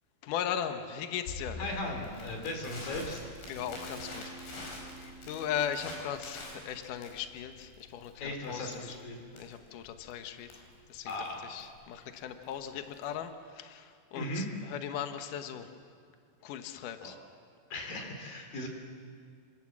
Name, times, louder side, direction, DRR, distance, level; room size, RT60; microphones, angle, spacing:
voice 1, 0.2-1.6 3.5-9.0 9.3-10.6 10.9-15.7 16.4-17.2, left 9 dB, 85° left, 7 dB, 1.8 m, -38 dB
Crackle, 1.3-13.2, left 2 dB, 65° left, 7.4 m, -46 dB
voice 2, 1.6-3.2 8.2-9.2 11.1-11.6 14.1-14.5 17.0-17.1 17.7-18.7, left 1 dB, 50° left, 2 dB, 5.0 m, -37 dB
Bass guitar, 3.6-7.9, right 3 dB, 75° right, 5.6 m, -51 dB
27.5 x 27.0 x 7.5 m, 2.1 s
omnidirectional pair, 5.6 m